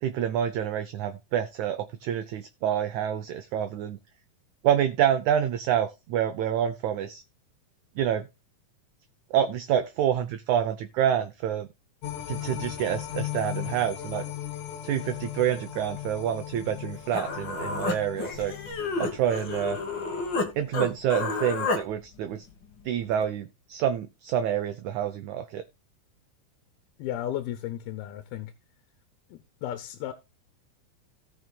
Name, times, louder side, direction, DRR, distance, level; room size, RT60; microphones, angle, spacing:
voice 1, 0.0-4.0 4.6-7.2 8.0-8.3 9.3-11.7 12.3-14.2 14.8-18.5 19.0-19.8 20.5-22.4 22.8-25.6, right 9 dB, 75° right, 1.8 m, -27 dB
sound 1, 12.0-20.4 20.8-20.9, left 12 dB, 65° left, 2.6 m, -38 dB
Human voice, 16.8-16.9 17.1-20.5 20.7-21.8, left 3 dB, 45° left, 1.5 m, -30 dB
voice 2, 27.0-28.5 29.3-30.1, left 12 dB, 85° left, 2.8 m, -34 dB
17.5 x 6.2 x 2.3 m
omnidirectional pair, 4.3 m